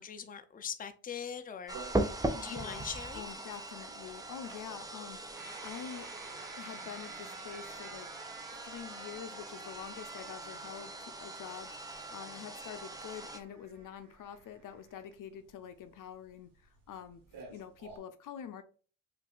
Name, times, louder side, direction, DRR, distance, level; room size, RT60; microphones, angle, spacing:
voice 1, 0.0-2.1 2.4-3.2, left 7 dB, 25° left, 9 dB, 0.5 m, -42 dB
sound 1, 1.7-13.4, right 2 dB, 10° right, 0.7 m, -40 dB
sound 2, 1.7-18.0, right 4 dB, 80° right, 1.2 m, -52 dB
voice 2, 2.3-2.9 3.1-6.1 6.6-8.1 8.6-17.2 17.5-18.6, left 8 dB, 70° left, 10 dB, 0.6 m, -46 dB
5.3 x 2.6 x 2.4 m, 0.39 s
supercardioid pair, 65°, 34 cm